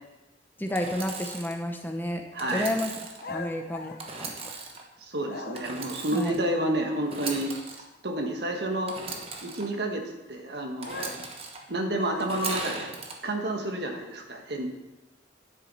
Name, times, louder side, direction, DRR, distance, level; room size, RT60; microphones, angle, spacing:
voice 1, 0.6-4.5 6.1-6.4, left 1 dB, 10° left, 4 dB, 0.6 m, -31 dB
Engine / Sawing, 0.7-1.6 2.4-3.2 4.0-4.8 5.5-6.4 7.0-7.8 8.9-9.6 10.8-11.6 12.2-13.1, right 3 dB, 30° right, 1.1 m, -37 dB
voice 2, 2.3-2.7 5.0-7.5 8.0-9.0 9.4-11.3 11.7-12.9 13.2-14.7, right 1 dB, 60° right, 3 dB, 1.4 m, -30 dB
sound 1, 3.2-4.8 5.2-5.9 10.8-12.6, left 3 dB, 55° left, 0.8 m, -41 dB
9.8 x 8.0 x 4.2 m, 1.0 s
head